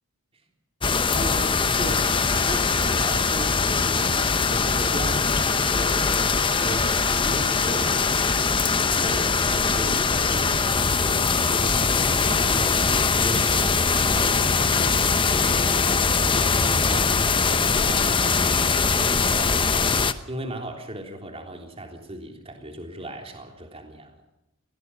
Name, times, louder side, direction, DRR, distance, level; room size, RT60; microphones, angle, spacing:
sound 1, 0.8-20.1, left 4 dB, 25° left, 0.9 m, -22 dB
voice 1, 1.1-15.0 15.3-24.2, right 1 dB, 25° right, 3 dB, 3.5 m, -37 dB
22.5 x 18.5 x 6.3 m, 0.90 s
head